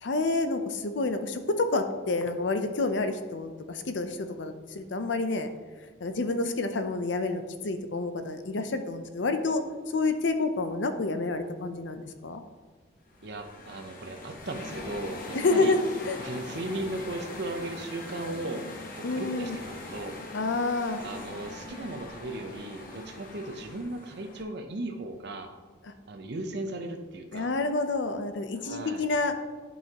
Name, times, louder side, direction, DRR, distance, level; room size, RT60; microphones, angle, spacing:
voice 1, 0.0-5.5 6.0-9.6 9.9-12.4 15.3-15.8 16.0-16.2 19.0-19.6 20.3-21.0 27.3-29.3, left 3 dB, 70° left, 8 dB, 0.6 m, -28 dB
sound 1, 13.1-24.4, left 2 dB, 45° left, 1.0 m, -42 dB
voice 2, 13.2-15.7 16.2-20.2 21.0-25.5 26.1-27.5 28.6-29.1, right 2 dB, 60° right, 6 dB, 0.8 m, -37 dB
11.0 x 5.5 x 2.9 m, 1.4 s
head